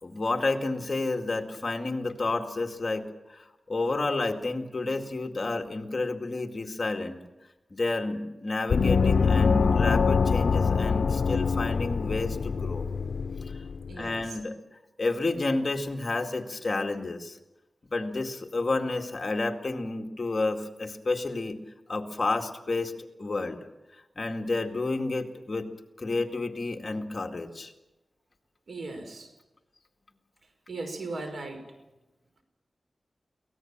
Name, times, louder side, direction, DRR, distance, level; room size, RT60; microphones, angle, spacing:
voice 1, 0.0-7.2 7.7-12.9 13.5-13.6 14.0-14.6 15.0-17.4 17.9-21.6 21.9-23.6 24.2-25.7 26.0-27.7, left 3 dB, 40° left, 4 dB, 2.1 m, -30 dB
Gong, 8.7-14.0, left 5 dB, 85° left, 0.7 m, -24 dB
voice 2, 13.9-14.2 28.7-29.3 30.7-31.6, right 3 dB, 80° right, 5 dB, 4.8 m, -37 dB
23.5 x 18.5 x 7.4 m, 1.0 s
wide cardioid pair, 115°, 0 cm